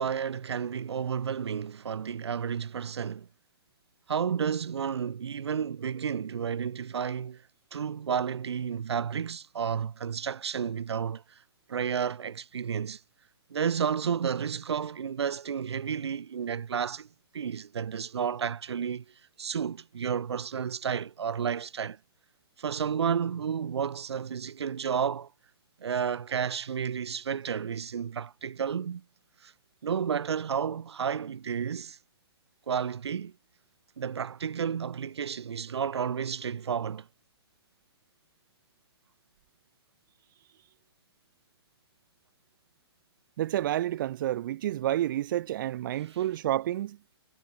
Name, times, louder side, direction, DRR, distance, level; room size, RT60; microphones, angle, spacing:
voice 1, 0.0-3.3 4.1-7.4 7.7-11.4 11.7-13.0 13.5-17.1 17.3-19.0 19.4-22.0 22.6-25.3 25.8-29.0 29.4-29.5 29.8-32.0 32.7-33.3 34.0-37.1 46.0-46.2, right 7 dB, 75° right, 2.4 m, -31 dB
voice 2, 43.4-47.0, right 13 dB, 50° right, 2.5 m, -29 dB
hypercardioid pair, 145°, 14 cm